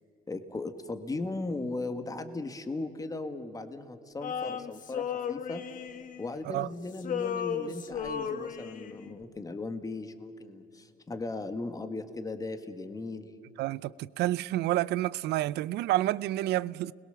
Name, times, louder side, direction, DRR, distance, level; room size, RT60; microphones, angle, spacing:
voice 1, 0.3-5.6 6.2-13.3, left 3 dB, 20° left, 1.8 m, -37 dB
Male singing, 4.2-6.7 6.9-9.1, left 7 dB, 50° left, 1.3 m, -35 dB
voice 2, 13.6-16.9, right 15 dB, 80° right, 0.5 m, -29 dB
30.0 x 21.5 x 7.0 m
cardioid pair, 110°, 17 cm